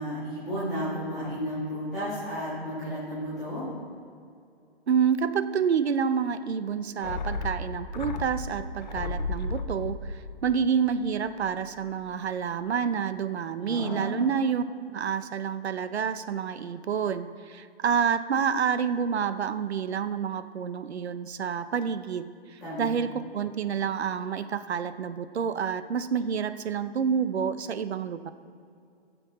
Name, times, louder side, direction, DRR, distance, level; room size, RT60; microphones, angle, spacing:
voice 1, 0.0-3.6 13.6-14.2 22.6-22.9, equal, ahead, -27 dB, 0.4 m, -33 dB
voice 2, 4.9-14.6 14.9-28.3, right 7 dB, 80° right, 12 dB, 0.8 m, -28 dB
sound 1, 7.0-11.6 11.9-12.0, left 3 dB, 45° left, 0.7 m, -34 dB
17.0 x 7.1 x 4.2 m, 2.4 s
hypercardioid pair, 165°, 32 cm